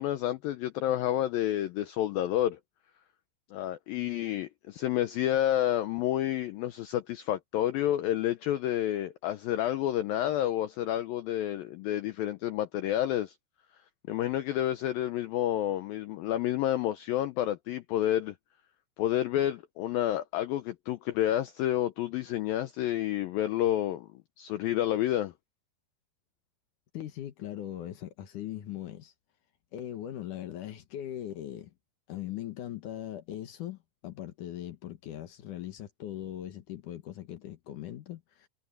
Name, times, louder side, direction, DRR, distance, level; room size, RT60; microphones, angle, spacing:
voice 1, 0.0-2.6 3.5-13.3 14.1-18.3 19.0-24.1 24.4-25.3, left 12 dB, 80° left, 2.1 m, -29 dB
voice 2, 26.9-29.1 29.7-31.7 32.1-38.5, left 12 dB, 65° left, 2.2 m, -40 dB
omnidirectional pair, 5.0 m